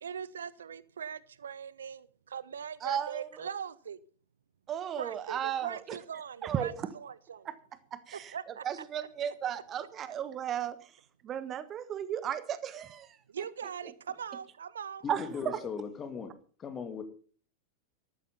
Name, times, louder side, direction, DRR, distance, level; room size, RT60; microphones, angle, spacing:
voice 1, 0.0-4.0 5.0-7.5 8.1-8.6 13.3-15.0, right 7 dB, 65° right, 0.7 m, -41 dB
voice 2, 2.8-3.5 4.7-6.0 6.4-6.9 7.4-7.5 7.9-13.4 15.1-15.6, right 9 dB, 30° right, 1.2 m, -35 dB
voice 3, 15.0-16.3 16.6-17.0, left 6 dB, 25° left, 2.7 m, -38 dB
14.0 x 12.0 x 5.4 m
figure-of-eight pair, 90°, 0 cm